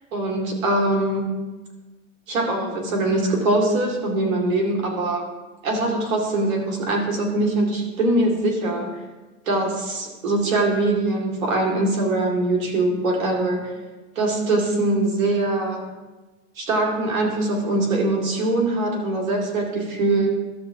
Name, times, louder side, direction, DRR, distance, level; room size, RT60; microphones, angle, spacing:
voice 1, 0.1-1.3 2.3-5.2 5.6-8.9 9.5-13.6 14.2-15.8 16.6-20.3, right 2 dB, 85° right, 0 dB, 2.4 m, -22 dB
12.5 x 7.1 x 2.8 m, 1.2 s
supercardioid pair, 125°, 40 cm